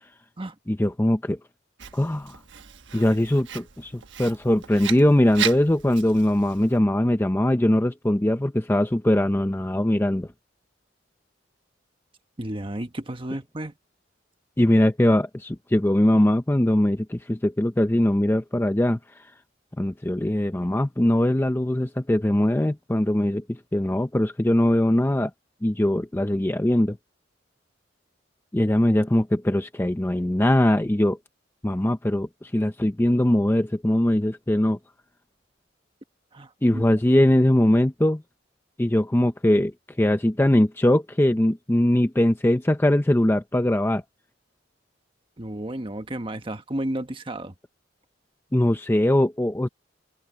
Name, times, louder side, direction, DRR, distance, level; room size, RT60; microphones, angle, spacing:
voice 1, 0.7-1.4 1.9-2.4 2.9-10.3 14.6-19.3 19.8-25.3 25.6-27.0 28.5-31.2 31.6-34.8 36.6-38.2 38.8-44.0 48.5-49.7, left 1 dB, 10° left, 0.6 m, -21 dB
Writing, 1.8-6.8, right 9 dB, 70° right, 1.2 m, -36 dB
voice 2, 12.4-13.7 36.3-36.8 45.4-47.5, right 1 dB, 25° right, 1.3 m, -32 dB
head